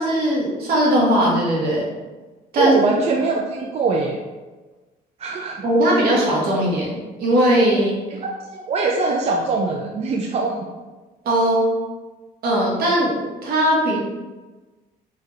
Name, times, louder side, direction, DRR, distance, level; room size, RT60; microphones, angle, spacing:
voice 1, 0.0-1.8 2.5-2.8 5.6-8.0 11.2-11.7 12.4-13.1 13.4-14.0, right 1 dB, 65° right, -4 dB, 1.3 m, -19 dB
voice 2, 2.5-4.2 5.2-5.6 8.1-10.6, right 3 dB, 40° right, 0 dB, 0.4 m, -22 dB
3.8 x 2.7 x 3.1 m, 1.2 s
cardioid pair, 110°, 17 cm